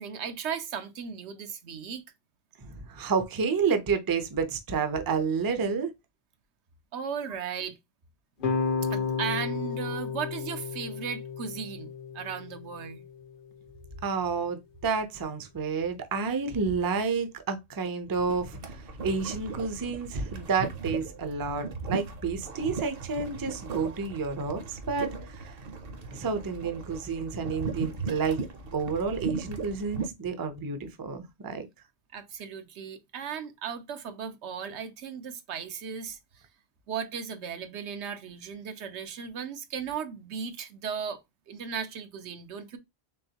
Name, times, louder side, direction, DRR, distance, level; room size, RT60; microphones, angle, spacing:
voice 1, 0.0-2.0 6.9-7.8 8.9-13.0 32.1-36.4 36.9-41.2 41.5-42.8, right 7 dB, 85° right, 1.0 m, -36 dB
voice 2, 2.6-5.9 14.0-18.8 19.0-25.6 26.1-28.4 28.7-31.6, right 5 dB, 30° right, 0.4 m, -30 dB
sound 1, 8.4-13.5, left 5 dB, 55° left, 0.8 m, -33 dB
sound 2, 18.1-30.1, right 4 dB, 60° right, 0.9 m, -38 dB
3.8 x 3.4 x 2.8 m
omnidirectional pair, 1.1 m